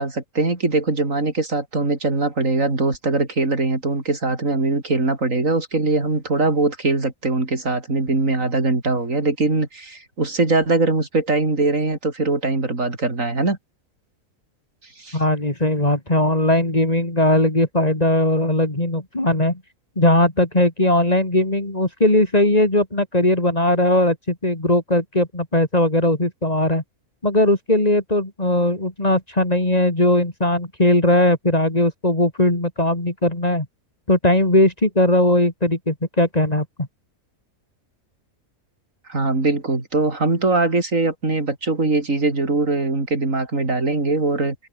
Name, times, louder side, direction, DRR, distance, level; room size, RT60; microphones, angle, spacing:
voice 1, 0.0-13.6 15.0-15.2 39.1-44.6, right 3 dB, 60° right, 4.6 m, -21 dB
voice 2, 15.1-19.6 20.0-26.8 27.2-33.7 34.1-36.9, left 1 dB, 25° left, 3.3 m, -19 dB
omnidirectional pair, 1.5 m